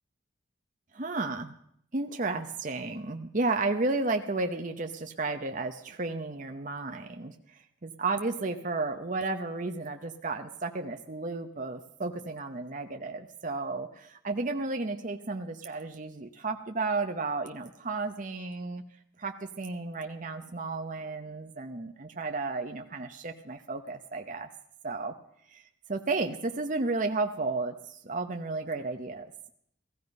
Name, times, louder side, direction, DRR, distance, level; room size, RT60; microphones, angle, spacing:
voice 1, 0.9-1.5 1.9-7.4 7.8-18.8 19.2-24.5 24.8-25.1 25.5-25.6 25.9-29.3, right 3 dB, 40° right, 5 dB, 0.8 m, -33 dB
16.0 x 15.5 x 5.4 m, 0.68 s
head